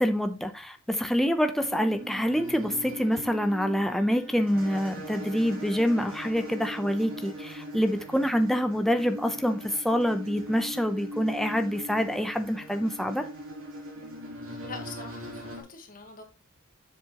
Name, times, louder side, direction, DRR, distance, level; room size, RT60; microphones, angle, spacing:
voice 1, 0.0-13.3, equal, ahead, 0.6 m, -26 dB
sound 1, 1.6-15.6, equal, 75° right, 2.8 m, -40 dB
voice 2, 14.6-16.2, left 4 dB, 40° left, 1.5 m, -43 dB
7.3 x 7.1 x 2.9 m
head